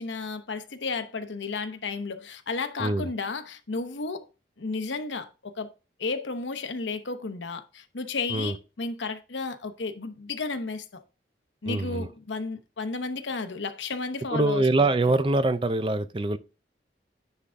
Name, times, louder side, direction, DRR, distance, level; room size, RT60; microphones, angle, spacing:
voice 1, 0.0-4.3 4.6-5.7 6.0-11.0 11.6-14.9, left 4 dB, 85° left, 0.9 m, -33 dB
voice 2, 11.7-12.1 14.3-16.4, right 2 dB, 30° right, 0.4 m, -24 dB
9.9 x 3.7 x 3.4 m
head